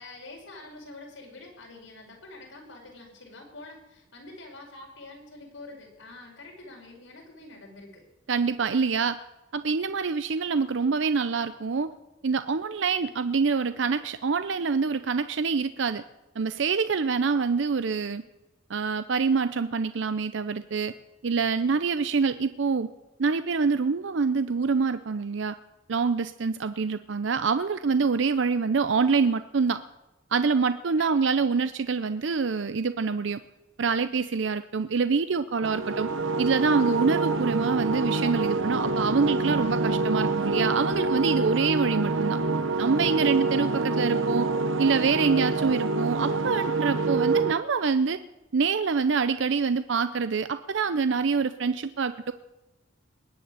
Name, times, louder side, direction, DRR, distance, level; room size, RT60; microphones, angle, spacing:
voice 1, 0.0-8.0 31.0-31.4, left 2 dB, 85° left, 0 dB, 5.2 m, -46 dB
voice 2, 8.3-9.2 9.5-11.9 12.2-16.0 16.4-18.2 18.7-20.9 21.2-22.9 23.2-25.5 25.9-29.8 30.3-33.4 33.8-36.1 36.4-42.4 42.8-44.5 44.8-48.2 48.5-52.3, right 5 dB, 70° right, 12 dB, 0.6 m, -25 dB
sound 1, 35.6-47.5, right 3 dB, 85° right, 0.9 m, -26 dB
20.5 x 6.8 x 9.4 m, 0.99 s
head